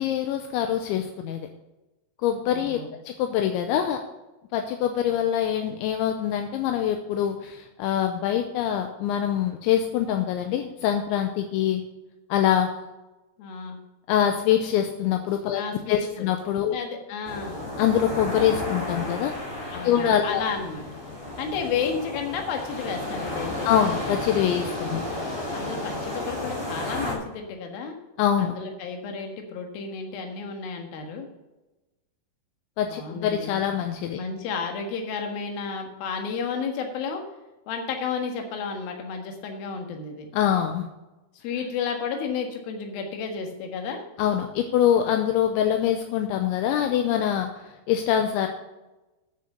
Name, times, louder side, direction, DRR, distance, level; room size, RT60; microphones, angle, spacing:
voice 1, 0.0-1.5 2.2-2.8 3.1-4.0 4.5-11.8 12.3-12.7 14.1-15.6 15.9-16.8 17.8-19.3 19.8-20.4 23.7-25.0 28.2-28.6 32.8-34.2 40.3-40.9 44.2-47.5 47.9-48.5, left 10 dB, 80° left, 5 dB, 2.9 m, -24 dB
voice 2, 2.4-2.9 13.4-13.8 15.6-16.3 16.7-17.6 19.7-20.8 21.4-23.7 25.5-28.0 28.4-31.3 32.9-33.6 34.2-37.2 37.7-40.3 41.4-44.0, left 5 dB, 60° left, 3 dB, 2.9 m, -32 dB
sound 1, 17.2-27.1, left 1 dB, 40° right, 0.3 m, -32 dB
10.0 x 6.8 x 6.7 m, 1.1 s
omnidirectional pair, 5.6 m